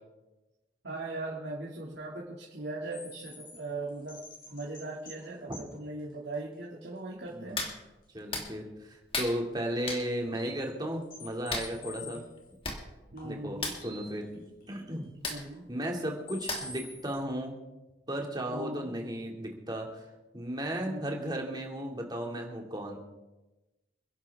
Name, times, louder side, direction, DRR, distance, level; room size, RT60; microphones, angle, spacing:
voice 1, 0.8-4.2 4.5-7.6 12.0-12.2 13.1-13.8 15.2-15.7 18.5-18.9 20.8-21.1, right 2 dB, 80° right, -4 dB, 2.4 m, -39 dB
sound 1, 2.9-5.2 5.5-5.8 6.3-6.4 6.8-6.9 7.3-7.4 9.8-9.9 10.2-12.5 13.2-14.3 14.6-14.7 15.5-15.6 16.0-16.1 16.3-17.2, left 2 dB, 50° left, 5.3 m, -47 dB
voice 2, 7.3-7.6 8.1-12.2 13.2-14.3 14.7-15.1 15.7-17.6 18.1-20.0 20.3-23.0, equal, 25° right, 1 dB, 2.4 m, -35 dB
Hands, 7.5-7.8 8.3-8.5 9.1-9.3 9.9-10.0 11.5-11.7 12.4-12.5 12.6-12.8 13.1-13.3 13.6-13.8 15.2-15.4 16.5-16.8 17.3-17.4, left 3 dB, 30° left, 2.4 m, -34 dB
27.5 x 11.0 x 3.6 m, 1.1 s
head